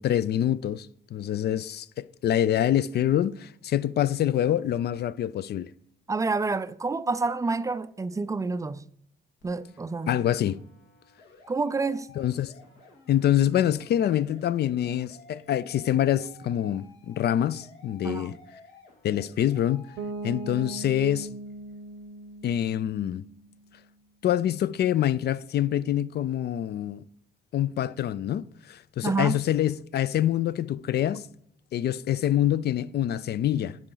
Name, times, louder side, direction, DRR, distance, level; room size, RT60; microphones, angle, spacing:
voice 1, 0.0-1.9 2.2-5.7 10.1-10.6 12.2-12.5 13.1-18.3 19.0-19.9 20.2-21.3 22.4-23.2 24.2-27.0 27.5-31.3 31.7-33.8, left 11 dB, 55° left, 0.4 m, -25 dB
voice 2, 6.1-8.8 9.4-10.2 11.5-12.1 18.0-18.4 29.0-29.4, right 3 dB, 15° right, 0.4 m, -28 dB
sound 1, 9.4-20.8, left 4 dB, 80° left, 2.4 m, -54 dB
Bass guitar, 20.0-23.7, right 2 dB, 75° right, 0.8 m, -39 dB
11.0 x 4.9 x 3.9 m
cardioid pair, 90°, 20 cm